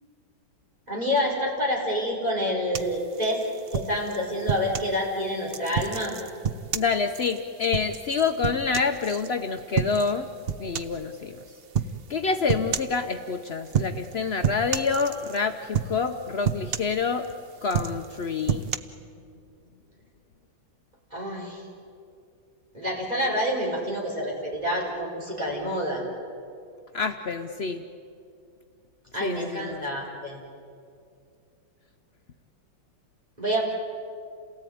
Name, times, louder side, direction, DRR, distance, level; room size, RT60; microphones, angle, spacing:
voice 1, 0.9-3.4 3.7-6.1 21.1-21.6 22.7-26.0 29.1-30.4 33.4-33.6, equal, 20° right, -2 dB, 4.8 m, -28 dB
sound 1, 2.7-4.9 5.5-9.3 9.7-10.2 10.5-11.0 11.7-12.0 12.5-13.0 13.7-14.1 14.4-15.4 15.7-16.1 16.4-17.3 17.6-18.8, right 8 dB, 75° right, 0.5 m, -29 dB
voice 2, 6.7-10.3 10.6-11.4 12.1-17.3 17.6-18.7 26.9-27.8 29.2-29.8, left 5 dB, 75° left, 6 dB, 0.5 m, -27 dB
28.0 x 18.0 x 9.3 m, 2.5 s
omnidirectional pair, 2.1 m